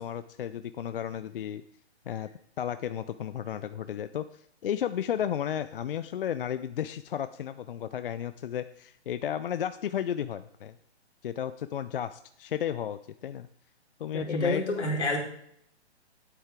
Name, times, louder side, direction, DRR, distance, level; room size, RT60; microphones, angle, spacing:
voice 1, 0.0-1.6 2.1-2.3 2.6-10.8 11.2-13.5 14.0-14.6, left 9 dB, 55° left, 12 dB, 0.4 m, -33 dB
voice 2, 14.1-15.2, left 2 dB, 85° left, -1 dB, 3.5 m, -28 dB
9.6 x 8.2 x 3.6 m, 0.68 s
hypercardioid pair, 140°, 34 cm